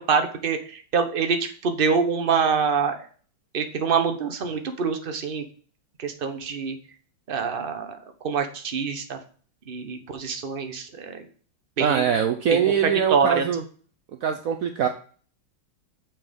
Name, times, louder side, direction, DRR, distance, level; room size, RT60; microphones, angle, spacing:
voice 1, 0.1-3.1 3.5-5.4 6.0-6.8 7.3-8.0 8.2-9.2 9.7-11.3 11.8-12.0 12.5-13.5, right 5 dB, 35° right, 6 dB, 0.9 m, -25 dB
voice 2, 11.8-13.6 14.2-14.9, right 8 dB, 70° right, 7 dB, 0.8 m, -23 dB
6.9 x 6.0 x 5.2 m, 0.42 s
omnidirectional pair, 2.2 m